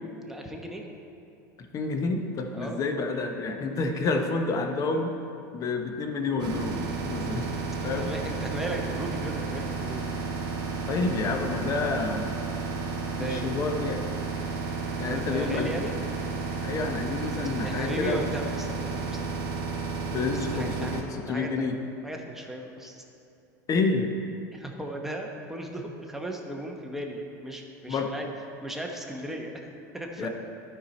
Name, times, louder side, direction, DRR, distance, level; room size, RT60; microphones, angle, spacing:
voice 1, 0.2-0.9 2.5-2.8 7.8-10.0 13.2-13.5 15.0-16.0 17.6-19.4 20.5-20.9 21.3-21.7 22.0-23.0 24.5-28.3 28.6-29.7 29.9-30.3, right 1 dB, 5° right, 0 dB, 1.0 m, -36 dB
voice 2, 1.7-5.1 5.5-7.5 7.8-8.1 10.9-12.3 13.2-14.0 15.0-15.7 16.6-18.2 20.1-21.8 23.7-24.1 27.9-28.1 30.2-30.3, left 3 dB, 40° left, 4 dB, 0.9 m, -29 dB
sound 1, 6.4-21.0, right 4 dB, 45° right, 1.2 m, -32 dB
12.0 x 4.7 x 4.3 m, 2.8 s
supercardioid pair, 100°, 9 cm